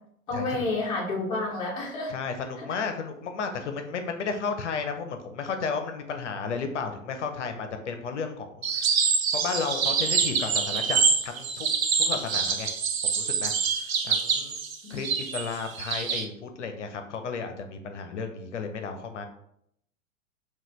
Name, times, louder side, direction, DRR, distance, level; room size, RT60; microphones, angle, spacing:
voice 1, 0.3-2.1 2.6-2.7 14.8-15.0, left 2 dB, 10° left, -2 dB, 0.5 m, -30 dB
voice 2, 2.1-9.1 9.3-11.7 12.0-12.7 13.0-13.5 13.8-14.6 14.9-19.3, left 5 dB, 60° left, 6 dB, 0.5 m, -33 dB
sound 1, 8.6-16.3, right 6 dB, 75° right, 0.6 m, -26 dB
3.9 x 2.3 x 3.0 m, 0.72 s
figure-of-eight pair, 100°, 41 cm